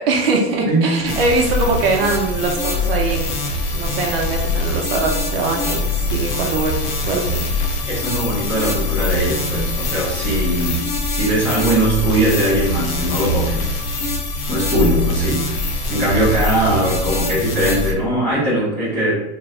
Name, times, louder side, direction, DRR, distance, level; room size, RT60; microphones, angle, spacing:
voice 1, 0.0-3.3 3.7-5.8 6.1-7.5, right 3 dB, 55° right, 0 dB, 0.6 m, -21 dB
sound 1, 1.1-17.9, left 2 dB, 60° left, 0.7 m, -23 dB
voice 2, 7.9-10.8 11.1-13.7 14.5-15.5 15.9-19.3, right 1 dB, 5° left, -11 dB, 0.4 m, -20 dB
3.0 x 2.0 x 3.6 m, 0.95 s
supercardioid pair, 165°, 34 cm